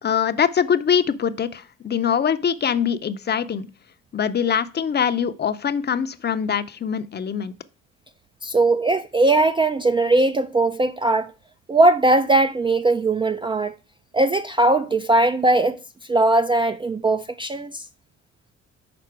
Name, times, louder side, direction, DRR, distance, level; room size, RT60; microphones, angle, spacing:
voice 1, 0.0-3.7 4.1-7.5, left 7 dB, 35° left, 0.6 m, -23 dB
voice 2, 8.4-11.3 11.7-13.8 14.1-15.8 16.1-17.8, right 2 dB, 15° right, 0.3 m, -19 dB
6.0 x 4.2 x 4.6 m
supercardioid pair, 70°, 31 cm